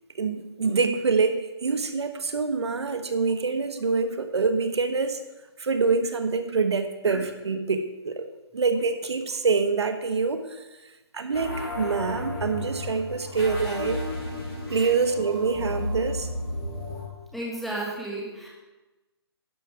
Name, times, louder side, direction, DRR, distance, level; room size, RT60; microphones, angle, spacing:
voice 1, 0.1-5.2 5.6-8.3 8.5-10.6 11.1-14.0 14.7-16.3, right 4 dB, 80° right, 8 dB, 1.2 m, -25 dB
sound 1, 11.3-17.0, left 1 dB, 20° left, 4.1 m, -33 dB
voice 2, 17.3-18.5, right 1 dB, ahead, -4 dB, 1.2 m, -33 dB
11.5 x 7.2 x 4.6 m, 1.1 s
hypercardioid pair, 165°, 14 cm